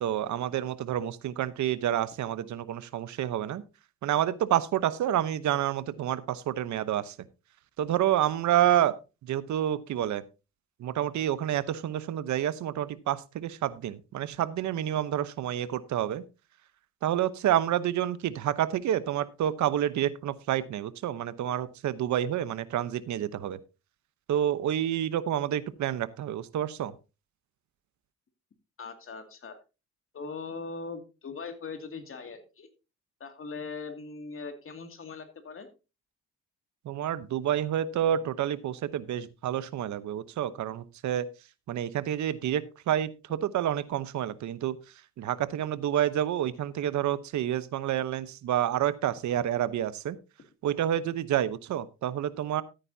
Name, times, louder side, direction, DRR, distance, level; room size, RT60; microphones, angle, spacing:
voice 1, 0.0-3.6 4.0-7.1 7.8-8.9 9.2-10.2 10.8-16.2 17.0-23.6 24.3-26.9 36.8-41.3 41.7-44.8 45.2-50.2 50.6-52.6, right 11 dB, 70° right, 15 dB, 0.9 m, -29 dB
voice 2, 28.8-29.6 30.1-32.7 33.2-35.7, left 4 dB, 45° left, 7 dB, 2.4 m, -40 dB
14.0 x 9.1 x 2.7 m, 0.29 s
cardioid pair, 90°, 30 cm